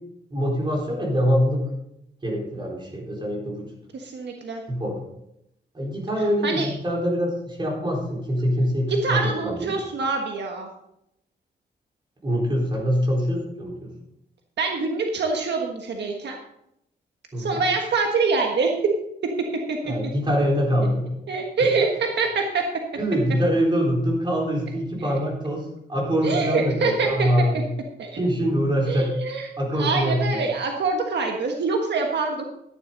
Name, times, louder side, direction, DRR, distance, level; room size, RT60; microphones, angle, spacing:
voice 1, 0.3-1.6 2.2-3.7 4.7-5.0 5.7-9.7 12.2-13.9 17.3-17.6 19.9-21.1 22.9-27.7 28.2-29.1 29.6-30.5, equal, 25° right, -2 dB, 4.3 m, -24 dB
voice 2, 3.9-4.6 6.4-6.7 9.0-10.7 14.6-16.4 17.4-18.7 19.7-19.8 21.3-22.6 26.2-27.3 28.0-28.2 28.9-32.4, right 4 dB, 75° right, 2 dB, 1.4 m, -25 dB
13.0 x 10.5 x 3.9 m, 0.80 s
wide cardioid pair, 140°, 18 cm